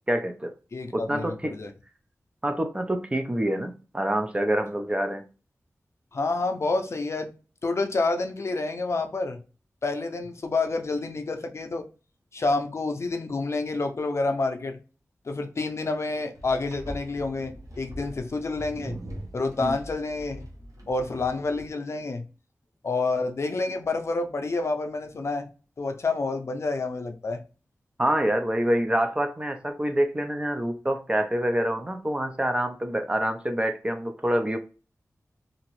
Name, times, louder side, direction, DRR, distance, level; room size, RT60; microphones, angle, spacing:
voice 1, 0.1-0.5 0.9-1.5 2.4-5.2 19.6-19.7 28.0-34.6, right 1 dB, 20° right, 6 dB, 0.4 m, -26 dB
voice 2, 0.7-1.7 6.1-7.3 7.6-9.4 9.8-11.9 12.3-14.8 15.3-19.0 19.3-20.5 20.9-22.2 22.8-25.5 25.8-27.4, left 3 dB, 55° left, 6 dB, 0.5 m, -28 dB
sound 1, 16.3-21.7, right 1 dB, 85° right, 1.0 m, -42 dB
2.9 x 2.5 x 3.0 m, 0.35 s
wide cardioid pair, 100°, 6 cm